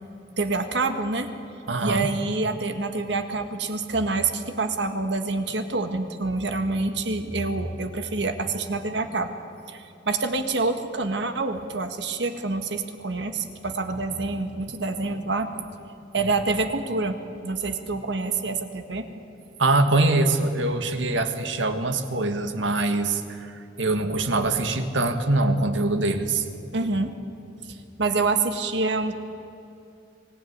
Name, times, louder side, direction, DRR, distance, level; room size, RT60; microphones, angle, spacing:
voice 1, 0.4-1.3 1.8-9.3 9.7-15.5 16.1-17.2 17.4-19.1 26.7-27.1 27.7-29.1, right 3 dB, 65° right, 7 dB, 1.7 m, -27 dB
voice 2, 1.7-2.1 19.6-26.5, right 2 dB, 90° right, 8 dB, 1.8 m, -23 dB
24.5 x 16.0 x 9.5 m, 2.7 s
head